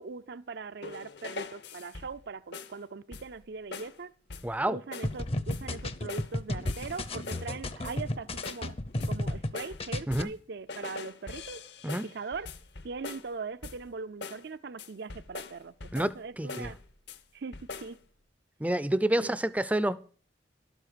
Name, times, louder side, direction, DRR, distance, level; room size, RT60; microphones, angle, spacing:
voice 1, 0.0-4.1 4.7-8.7 9.1-11.6 12.0-12.5 12.8-16.8 17.3-18.0 19.2-19.3, right 4 dB, 60° right, 0.5 m, -40 dB
sound 1, 0.8-2.2 2.5-2.8 3.1-3.4 3.7-4.0 4.3-4.6 4.9-5.2 5.5-6.4 6.7-7.5 7.8-8.1 8.4-10.4 10.7-13.3 13.6-13.9 14.2-14.5 14.8-16.2 16.5-17.2 17.5-18.0, left 4 dB, 60° left, 0.9 m, -43 dB
voice 2, 4.4-4.8 10.1-10.3 11.8-12.1 15.9-16.7 18.6-20.0, right 1 dB, 10° right, 0.5 m, -28 dB
sound 2, 5.0-9.5 9.8-10.2, left 1 dB, 30° left, 0.7 m, -33 dB
12.0 x 8.0 x 6.6 m
head